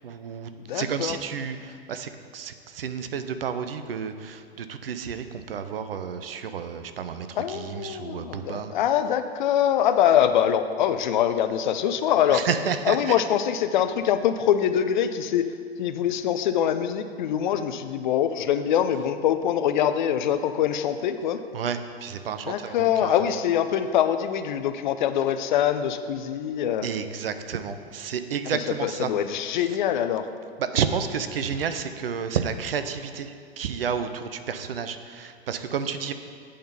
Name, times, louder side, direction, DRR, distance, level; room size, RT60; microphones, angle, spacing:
voice 1, 0.0-8.7 12.3-13.2 21.5-23.2 26.8-29.1 30.6-36.1, right 7 dB, 65° right, 10 dB, 0.6 m, -31 dB
voice 2, 0.7-1.2 7.4-12.4 12.9-15.5 15.8-21.4 22.5-26.9 28.5-30.3, left 9 dB, 50° left, 10 dB, 0.5 m, -24 dB
8.5 x 3.8 x 6.9 m, 2.2 s
figure-of-eight pair, 100°, 31 cm